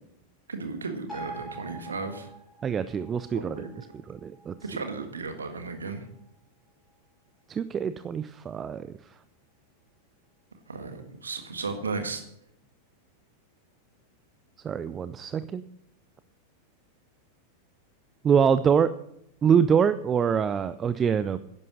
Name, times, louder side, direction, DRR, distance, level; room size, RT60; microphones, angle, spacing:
voice 1, 0.5-2.3 3.3-3.7 4.6-6.1 10.7-12.2, right 4 dB, 75° right, 6 dB, 1.6 m, -35 dB
sound 1, 1.1-8.0 8.4-8.5, right 2 dB, 5° left, 6.0 m, -47 dB
voice 2, 2.6-4.5 7.5-8.9 14.6-15.6 18.2-18.9 19.4-21.4, right 7 dB, 25° right, 14 dB, 0.5 m, -25 dB
11.0 x 11.0 x 6.4 m, 0.76 s
figure-of-eight pair, 90°, 0 cm